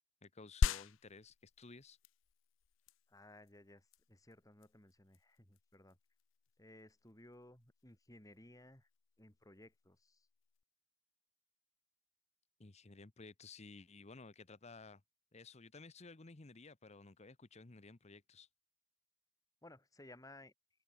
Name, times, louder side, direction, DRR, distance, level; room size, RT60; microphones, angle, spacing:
voice 1, 0.2-2.0 12.6-15.0 15.3-18.5, left 3 dB, 35° left, 0.9 m, -55 dB
sound 1, 0.6-10.6, left 5 dB, 75° left, 0.5 m, -43 dB
voice 2, 3.1-6.0 6.6-8.9 9.2-10.3 19.6-20.5, left 1 dB, 20° left, 3.1 m, -59 dB
open air
head